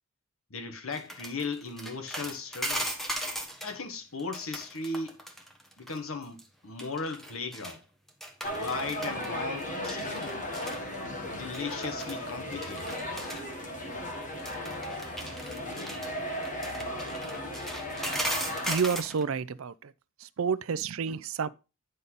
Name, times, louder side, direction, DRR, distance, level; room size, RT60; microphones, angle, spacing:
voice 1, 0.5-2.9 3.6-5.2 5.8-7.8 8.5-10.4 11.4-13.0, left 3 dB, 75° left, 1.5 m, -37 dB
sound 1, 0.9-3.7 4.2-6.0 6.2-6.4 6.8-7.8 8.1-9.3 9.6-10.8 11.5-12.2 12.5-13.4 14.4-19.2, right 1 dB, ahead, 1.3 m, -37 dB
sound 2, 8.4-18.8, left 1 dB, 40° left, 1.5 m, -36 dB
voice 2, 18.7-19.9 20.2-21.5, right 6 dB, 70° right, 0.5 m, -30 dB
9.7 x 5.3 x 4.0 m
head